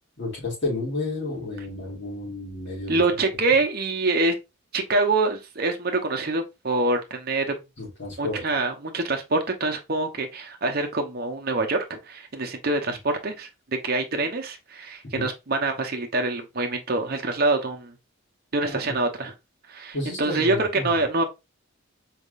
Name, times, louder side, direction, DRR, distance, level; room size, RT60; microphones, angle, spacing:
voice 1, 0.2-3.2 7.8-8.4 12.9-13.0 15.1-15.3 18.7-18.8 19.9-21.0, left 2 dB, 55° left, 2.7 m, -31 dB
voice 2, 2.9-4.4 4.7-7.6 8.2-13.5 13.8-17.9 18.5-19.3 19.7-21.2, right 2 dB, 45° right, 0.8 m, -25 dB
4.5 x 3.5 x 2.5 m
head